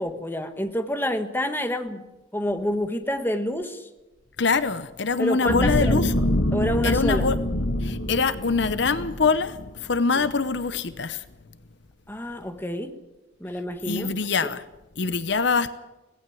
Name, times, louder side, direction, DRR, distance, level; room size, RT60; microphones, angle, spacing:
voice 1, 0.0-2.0 2.3-3.9 5.2-6.0 6.5-7.3 10.2-10.3 12.1-13.0 13.4-14.1, equal, 10° left, 1.4 m, -28 dB
voice 2, 4.4-6.1 6.8-7.4 7.8-11.2 13.8-14.6 15.0-15.7, left 4 dB, 60° left, 0.8 m, -24 dB
sound 1, 5.5-10.0 10.4-10.6, left 1 dB, 85° left, 1.8 m, -25 dB
18.5 x 16.0 x 9.2 m
head